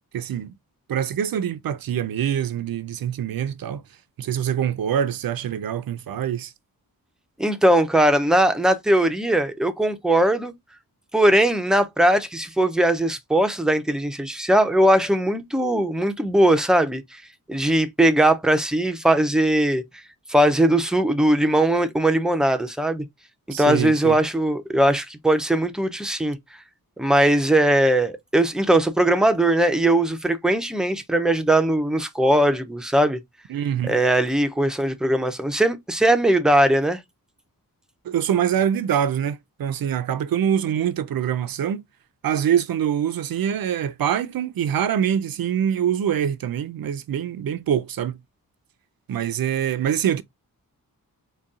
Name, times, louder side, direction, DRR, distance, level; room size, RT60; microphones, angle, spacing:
voice 1, 0.1-0.5 0.9-3.8 4.2-6.5 23.5-24.2 33.5-34.0 38.0-41.8 42.2-48.2 49.1-50.2, right 9 dB, 70° right, 0.5 m, -24 dB
voice 2, 7.4-10.5 11.1-17.2 17.5-19.8 20.3-23.0 23.5-26.4 27.0-33.2 33.9-37.0, right 1 dB, ahead, 0.4 m, -20 dB
4.0 x 2.2 x 3.6 m
wide cardioid pair, 175°, 36 cm